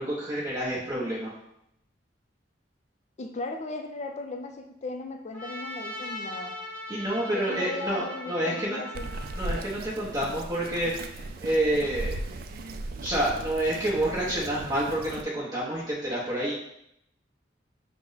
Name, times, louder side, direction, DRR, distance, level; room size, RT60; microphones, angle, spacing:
voice 1, 0.0-1.3 6.9-8.8 9.3-12.2 13.0-16.6, right 1 dB, 20° right, -8 dB, 0.8 m, -28 dB
voice 2, 3.2-6.6 7.3-9.1, left 3 dB, 40° left, 5 dB, 0.4 m, -37 dB
Trumpet, 5.3-9.8, left 1 dB, 5° left, 0.7 m, -39 dB
Bird vocalization bird call bird song, 8.9-15.2, right 2 dB, 50° right, 0.3 m, -37 dB
5.8 x 2.1 x 3.8 m, 0.77 s
head